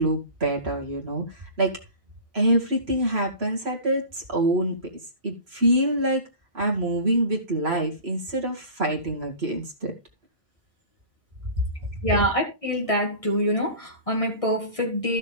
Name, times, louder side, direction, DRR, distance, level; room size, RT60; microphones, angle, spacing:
voice 1, 0.0-1.8 2.3-4.8 5.2-6.3 6.5-9.9 11.6-11.7, right 1 dB, 85° right, 1 dB, 2.4 m, -25 dB
voice 2, 12.0-15.2, equal, 35° left, -1 dB, 2.2 m, -25 dB
14.0 x 6.6 x 3.5 m, 0.25 s
omnidirectional pair, 1.0 m